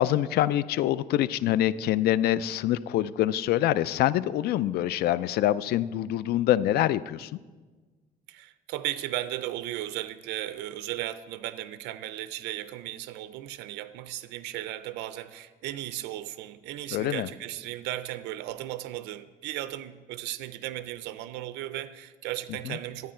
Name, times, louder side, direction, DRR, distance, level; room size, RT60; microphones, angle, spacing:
voice 1, 0.0-7.3 16.9-17.3 22.7-22.8, left 13 dB, 70° left, 17 dB, 0.4 m, -25 dB
voice 2, 8.3-23.1, right 14 dB, 90° right, 13 dB, 0.4 m, -36 dB
12.5 x 9.3 x 4.4 m, 1.3 s
cardioid pair, 110°, 17 cm